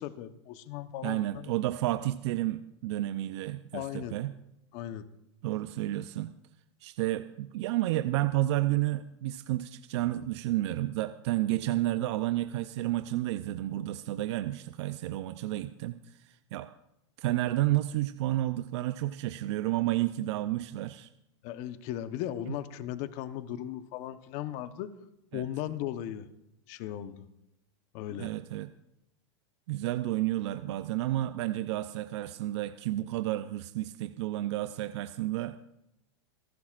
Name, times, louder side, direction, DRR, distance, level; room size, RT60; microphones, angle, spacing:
voice 1, 0.0-1.5 3.7-4.1 4.7-5.1 21.4-24.9 25.3-26.3 26.7-27.2 27.9-28.3, left 12 dB, 50° left, 11 dB, 1.0 m, -37 dB
voice 2, 1.0-4.3 5.4-6.3 6.8-16.7 17.2-21.1 22.5-22.6 25.3-25.4 28.1-28.7 29.7-35.6, right 15 dB, 65° right, 10 dB, 0.6 m, -31 dB
27.5 x 11.5 x 2.5 m, 0.84 s
hypercardioid pair, 120°, 15 cm